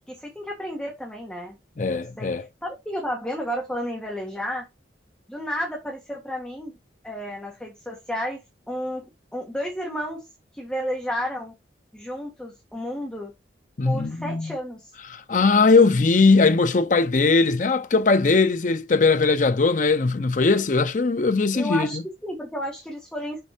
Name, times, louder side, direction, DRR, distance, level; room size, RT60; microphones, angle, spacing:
voice 1, 0.1-1.6 2.2-4.7 5.3-6.7 7.0-8.4 8.7-9.0 9.3-10.2 10.5-11.5 11.9-13.3 13.8-14.9 21.5-23.4, equal, 5° left, 1.6 m, -32 dB
voice 2, 1.8-2.5 13.8-14.5 15.1-22.0, left 3 dB, 45° left, 0.5 m, -20 dB
6.7 x 4.3 x 5.0 m
head